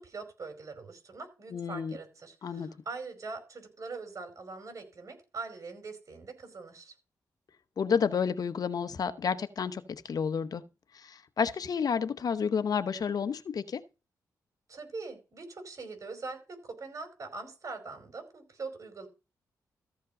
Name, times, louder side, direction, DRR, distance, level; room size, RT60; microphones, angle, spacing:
voice 1, 0.0-6.9 14.7-19.1, right 4 dB, 45° right, 5.1 m, -42 dB
voice 2, 1.5-1.9 2.4-2.7 7.8-10.6 10.9-13.8, left 6 dB, 60° left, 0.9 m, -30 dB
14.5 x 5.2 x 5.2 m
cardioid pair, 70°, 7 cm